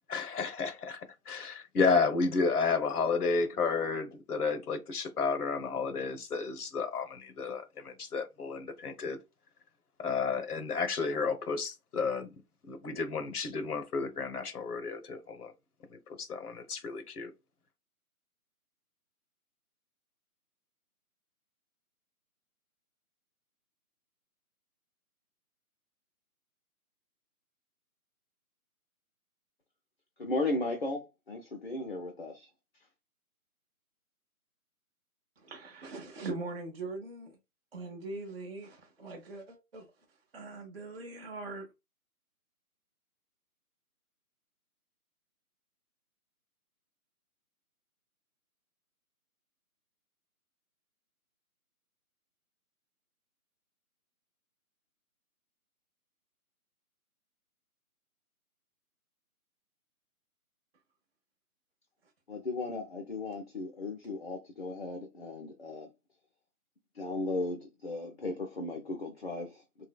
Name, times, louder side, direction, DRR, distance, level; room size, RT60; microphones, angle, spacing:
voice 1, 0.1-9.2 10.0-15.5 15.9-17.3, left 4 dB, 85° left, 0.9 m, -32 dB
voice 2, 30.2-32.5 62.3-65.9 67.0-69.6, left 2 dB, 45° left, 0.4 m, -36 dB
voice 3, 35.4-37.4 37.7-39.9 40.3-41.7, right 3 dB, 40° right, 0.6 m, -41 dB
3.2 x 2.7 x 2.2 m
hypercardioid pair, 165°, 45 cm